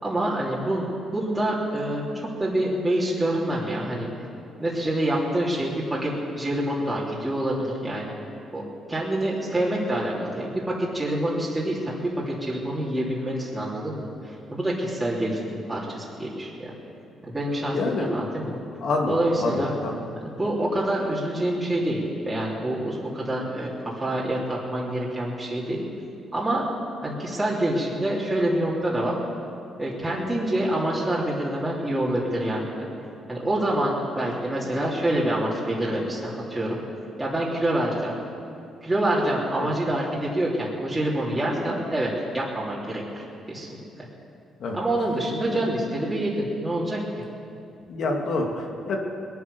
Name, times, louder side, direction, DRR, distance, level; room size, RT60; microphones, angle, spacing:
voice 1, 0.0-4.1 4.6-8.1 8.5-8.6 8.9-16.7 17.2-18.6 19.1-19.7 20.2-25.8 26.3-26.7 27.0-29.1 29.8-32.9 33.3-36.8 37.2-38.1 38.8-43.7 44.7-47.0, right 1 dB, 15° right, -6 dB, 3.2 m, -26 dB
voice 2, 17.7-18.1 18.8-19.9 39.6-39.7 44.6-44.8 45.5-45.6 47.9-49.0, left 3 dB, 65° left, 2 dB, 2.4 m, -27 dB
21.0 x 9.5 x 6.9 m, 2.5 s
cardioid pair, 85°, 0 cm